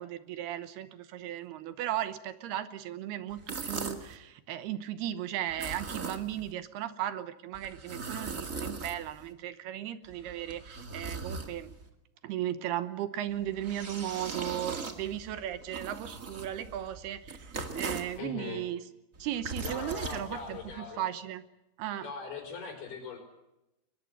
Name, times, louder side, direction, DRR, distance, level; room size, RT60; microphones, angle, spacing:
voice 1, 0.0-11.7 12.2-18.8 19.2-21.4 21.8-22.1, right 12 dB, 75° right, 12 dB, 2.9 m, -36 dB
sound 1, 3.3-4.2 5.5-6.5 7.5-9.3 10.0-11.9 13.3-18.2 19.1-20.8, right 4 dB, 40° right, 1.1 m, -40 dB
voice 2, 18.2-18.6 19.6-21.1 22.0-23.2, left 5 dB, 65° left, 4 dB, 7.0 m, -40 dB
23.0 x 21.5 x 7.9 m, 0.90 s
omnidirectional pair, 4.9 m